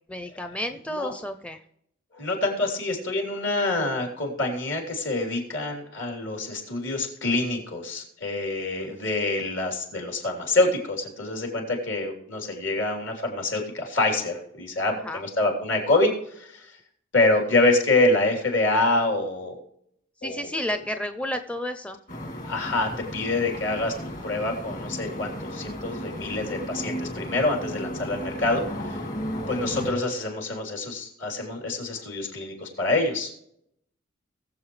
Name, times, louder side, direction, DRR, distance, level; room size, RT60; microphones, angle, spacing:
voice 1, 0.1-1.6 14.9-15.2 20.2-22.0, left 1 dB, 5° left, 8 dB, 0.5 m, -31 dB
voice 2, 2.1-16.7 17.1-19.5 20.2-20.8 22.4-29.0 29.5-33.3, left 2 dB, 65° left, 2 dB, 3.5 m, -26 dB
sound 1, 22.1-29.9, equal, 40° left, 2.0 m, -34 dB
20.5 x 7.6 x 3.2 m, 0.73 s
head